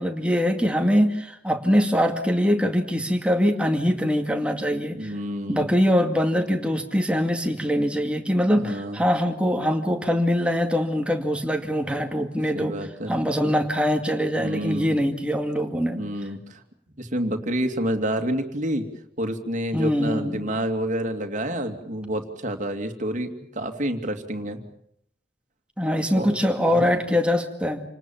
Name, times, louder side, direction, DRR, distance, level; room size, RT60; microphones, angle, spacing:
voice 1, 0.0-5.1 5.5-12.7 13.1-16.0 19.7-20.4 25.8-27.8, equal, 5° right, 4 dB, 2.3 m, -23 dB
voice 2, 5.0-5.7 8.5-9.0 12.5-13.1 14.4-14.9 15.9-16.6 17.0-18.9 19.2-24.6 26.1-26.3 26.7-27.0, right 1 dB, 45° right, 5 dB, 2.7 m, -28 dB
28.5 x 19.0 x 7.4 m, 0.72 s
head